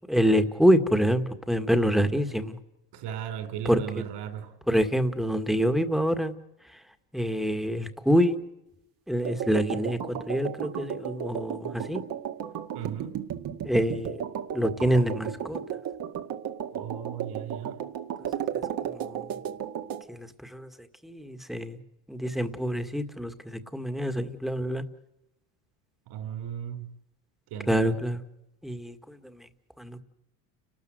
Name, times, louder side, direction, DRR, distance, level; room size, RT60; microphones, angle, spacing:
voice 1, 0.1-2.6 3.7-4.0 4.7-6.3 6.7-6.8 7.1-8.4 9.1-10.0 10.3-12.0 13.6-14.2 14.5-15.6 18.5-19.3 20.1-21.8 22.1-24.8 27.7-28.2 28.6-29.5 29.8-30.0, equal, ahead, 8 dB, 2.0 m, -26 dB
voice 2, 2.9-4.5 12.7-13.1 16.7-17.8 26.1-26.9 27.5-28.0, right 9 dB, 65° right, 7 dB, 5.2 m, -36 dB
sound 1, 9.2-20.0, right 9 dB, 50° right, 2.1 m, -34 dB
30.0 x 13.5 x 7.9 m, 0.91 s
supercardioid pair, 100°, 45 cm